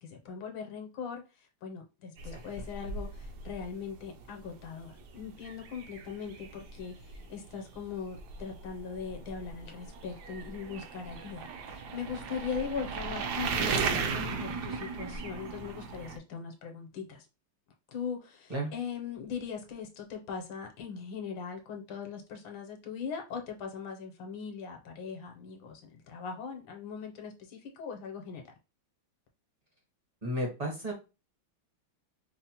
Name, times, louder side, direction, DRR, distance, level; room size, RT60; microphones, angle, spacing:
voice 1, 0.0-17.3 17.9-25.8 26.1-28.4, left 6 dB, 75° left, 1.4 m, -40 dB
sound 1, 2.2-16.2, right 5 dB, 70° right, 0.9 m, -37 dB
voice 2, 30.2-30.9, right 1 dB, 40° right, 0.5 m, -33 dB
5.3 x 2.0 x 2.8 m
omnidirectional pair, 2.3 m